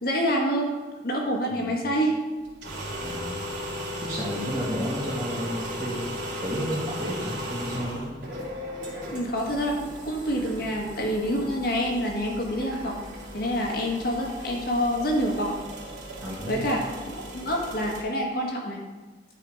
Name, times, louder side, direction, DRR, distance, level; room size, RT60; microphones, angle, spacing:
voice 1, 0.0-0.7 1.0-2.2 9.1-13.0 13.3-15.6 16.5-18.8, equal, 55° left, 0 dB, 1.7 m, -27 dB
voice 2, 1.5-1.8 3.0-3.4 4.0-8.1 16.2-16.7, equal, 20° right, -9 dB, 2.4 m, -32 dB
sound 1, 2.4-18.0, equal, 75° right, 2.7 m, -37 dB
11.5 x 4.8 x 5.0 m, 1.3 s
head